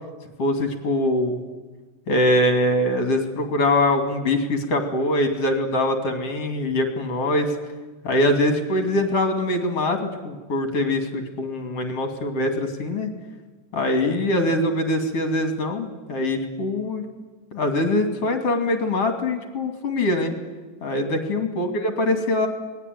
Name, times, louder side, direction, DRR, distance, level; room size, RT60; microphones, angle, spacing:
voice 1, 0.4-1.4 2.1-7.5 8.0-13.1 13.7-17.1 17.5-20.3 20.8-22.5, left 1 dB, 50° left, 5 dB, 3.4 m, -23 dB
27.5 x 20.0 x 9.4 m, 1.3 s
omnidirectional pair, 3.7 m